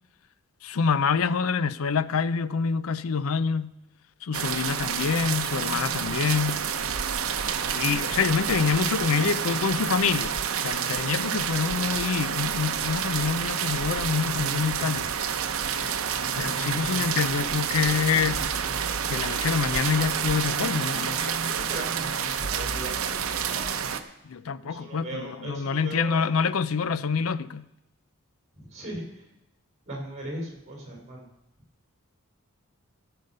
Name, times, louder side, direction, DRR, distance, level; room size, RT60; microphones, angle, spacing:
voice 1, 0.6-3.8 4.2-6.7 7.7-10.3 10.6-15.1 16.4-18.4 19.1-21.4 24.2-27.7, left 6 dB, 75° left, 0.5 m, -26 dB
sound 1, 4.3-24.0, right 7 dB, 75° right, 0.8 m, -29 dB
voice 2, 16.7-17.2 21.5-23.8 24.6-26.3 28.6-29.2 29.9-31.3, right 1 dB, 30° right, 3.7 m, -39 dB
14.5 x 6.8 x 5.4 m
head